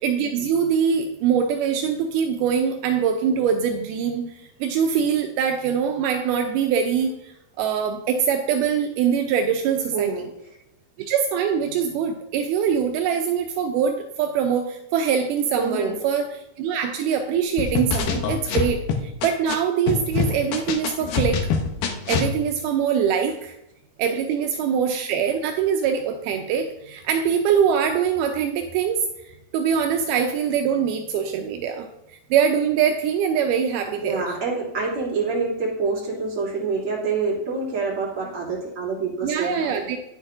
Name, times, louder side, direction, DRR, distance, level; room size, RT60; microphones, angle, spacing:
voice 1, 0.0-7.3 7.6-10.3 11.0-21.5 22.1-23.6 24.0-29.0 29.3-31.9 32.3-34.4 39.2-40.0, right 7 dB, 85° right, 5 dB, 2.1 m, -23 dB
voice 2, 9.9-10.3 15.5-16.0 24.0-24.1 34.0-39.7, right 4 dB, 45° right, -7 dB, 3.3 m, -26 dB
sound 1, 17.6-19.5 19.9-22.3, left 5 dB, 85° left, 2.4 m, -24 dB
9.9 x 8.4 x 2.5 m, 0.85 s
omnidirectional pair, 3.7 m